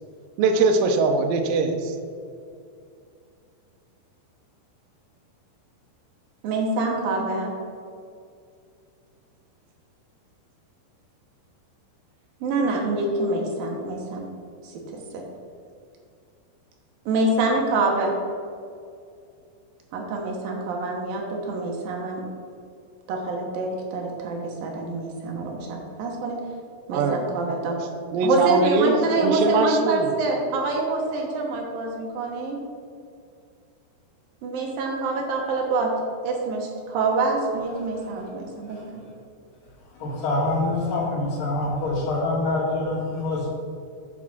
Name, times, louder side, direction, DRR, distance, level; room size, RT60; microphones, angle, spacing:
voice 1, 0.4-1.9 26.9-27.2 28.1-29.0 29.2-30.1, right 3 dB, 80° right, 5 dB, 2.0 m, -21 dB
voice 2, 6.4-7.5 12.4-14.3 14.9-15.2 17.1-18.1 19.9-22.2 23.1-26.4 26.9-27.8 28.2-32.6 34.4-35.9 36.2-39.0, right 3 dB, 65° right, 0 dB, 2.6 m, -26 dB
voice 3, 39.9-43.5, left 2 dB, 50° left, -6 dB, 4.0 m, -25 dB
7.4 x 6.8 x 6.1 m, 2.4 s
omnidirectional pair, 5.1 m